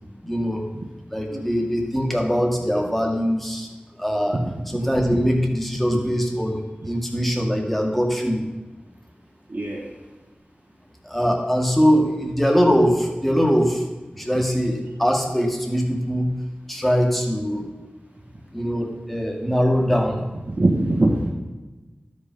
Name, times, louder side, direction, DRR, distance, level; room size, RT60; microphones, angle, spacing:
voice 1, 0.2-0.6 1.1-3.7 4.0-4.4 4.7-8.5 11.0-13.8 14.2-16.4 16.7-17.7 18.5-20.2, equal, 5° left, 1 dB, 1.8 m, -22 dB
voice 2, 4.4-4.8 5.1-5.2 9.5-9.9 14.3-14.4 20.5-21.3, right 2 dB, 65° right, -6 dB, 1.9 m, -23 dB
12.0 x 5.2 x 5.4 m, 1.2 s
wide cardioid pair, 50°, 4 cm